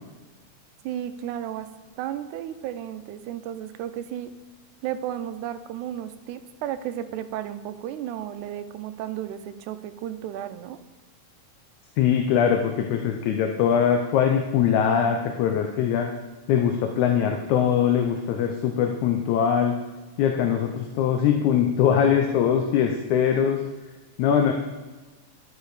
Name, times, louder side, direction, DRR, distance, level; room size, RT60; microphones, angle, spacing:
voice 1, 0.8-1.7 2.0-4.3 4.8-10.8, right 11 dB, 85° right, 10 dB, 2.1 m, -33 dB
voice 2, 12.0-16.1 16.5-19.8 20.2-23.6 24.2-24.5, left 8 dB, 80° left, 4 dB, 2.1 m, -22 dB
11.0 x 6.4 x 4.8 m, 1.2 s
omnidirectional pair, 3.5 m